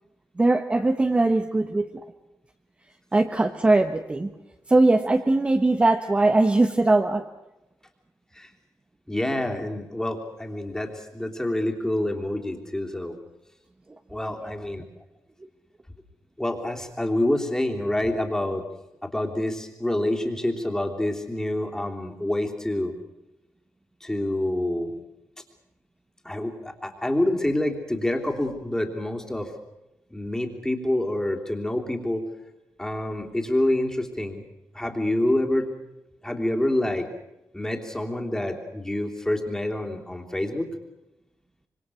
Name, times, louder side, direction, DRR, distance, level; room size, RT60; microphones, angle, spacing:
voice 1, 0.4-1.9 3.1-4.3 4.7-7.3 14.4-14.5, right 2 dB, 20° right, 5 dB, 1.2 m, -20 dB
voice 2, 9.1-13.1 14.1-14.9 16.4-18.6 19.0-22.9 24.0-25.0 26.2-29.5 30.1-32.2 32.8-34.4 34.7-35.7 36.2-37.1 37.5-40.7, left 1 dB, 10° left, 2 dB, 3.3 m, -27 dB
26.0 x 24.5 x 6.4 m, 0.96 s
wide cardioid pair, 155°, 6 cm